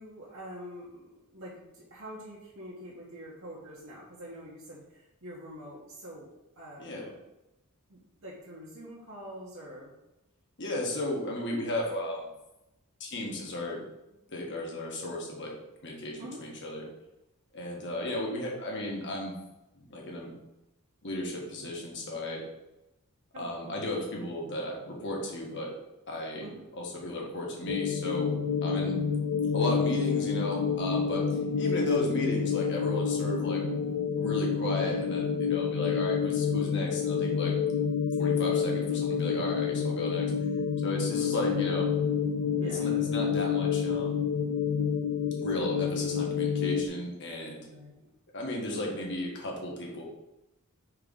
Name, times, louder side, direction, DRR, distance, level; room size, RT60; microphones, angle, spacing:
voice 1, 0.0-6.3 6.6-7.2 7.9-9.9 16.2-16.4 23.3-23.8 26.4-26.6 41.1-41.2 42.6-42.9 47.7-48.1, equal, 65° right, -6 dB, 1.3 m, -45 dB
voice 2, 6.8-7.1 10.6-12.3 13.0-13.8 14.3-15.5 15.8-16.8 17.5-19.3 19.7-20.3 21.0-22.4 23.3-25.7 26.1-26.5 26.8-28.3 28.6-29.0 29.5-33.6 34.1-37.6 38.2-40.3 40.8-41.9 42.6-44.2 45.4-47.7 48.3-50.0, left 1 dB, 55° left, -2 dB, 1.5 m, -34 dB
sound 1, 27.7-46.9, left 6 dB, 90° left, 0.4 m, -28 dB
4.7 x 3.7 x 5.4 m, 0.93 s
head